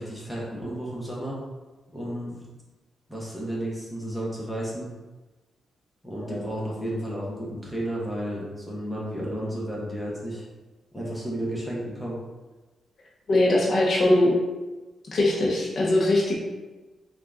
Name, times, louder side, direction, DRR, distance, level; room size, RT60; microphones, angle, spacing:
voice 1, 0.0-1.4 1.9-2.5 3.1-4.9 6.0-10.5 10.9-12.2, right 1 dB, ahead, -6 dB, 0.9 m, -32 dB
voice 2, 13.3-14.3 15.1-16.4, left 1 dB, 50° left, -4 dB, 0.7 m, -21 dB
3.6 x 2.5 x 3.4 m, 1.2 s
wide cardioid pair, 150°, 0 cm